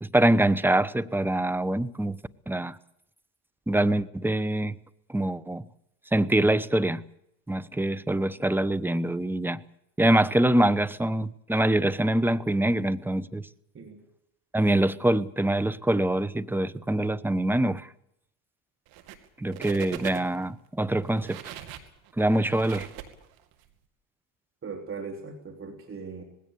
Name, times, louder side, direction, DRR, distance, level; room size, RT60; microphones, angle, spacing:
voice 1, 0.0-2.2 2.5-2.8 3.7-4.8 5.1-5.6 6.1-7.0 7.5-9.6 10.0-13.5 14.5-17.9 19.4-21.4 22.2-22.9, right 1 dB, 5° right, 0.9 m, -24 dB
sound 1, 18.9-19.3 19.5-20.5 21.0-23.7, right 11 dB, 75° right, 2.5 m, -41 dB
voice 2, 24.6-26.2, right 5 dB, 35° right, 3.3 m, -39 dB
20.0 x 16.5 x 8.6 m
supercardioid pair, 85°, 38 cm